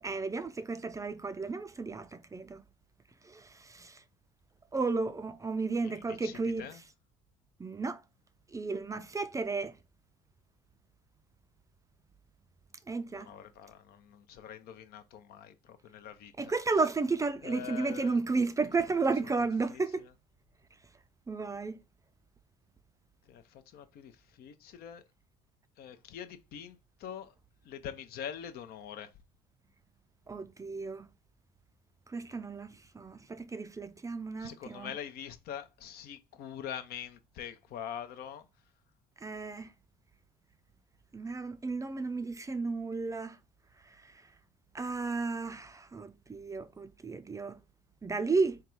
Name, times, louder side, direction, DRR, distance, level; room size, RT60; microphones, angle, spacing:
voice 1, 0.0-2.6 3.2-4.0 4.7-6.7 7.6-8.0 8.5-9.8 12.9-13.3 16.4-20.1 21.3-21.8 30.3-31.1 32.1-34.9 39.2-39.7 41.1-43.4 44.0-44.1 44.7-47.6 48.0-48.6, right 4 dB, 20° right, 0.4 m, -33 dB
voice 2, 5.8-6.8 13.1-16.5 17.4-18.2 19.2-20.1 23.3-25.0 25.8-27.3 27.6-29.1 34.4-38.5, left 9 dB, 65° left, 0.6 m, -44 dB
3.7 x 2.3 x 4.4 m
supercardioid pair, 70°, 17 cm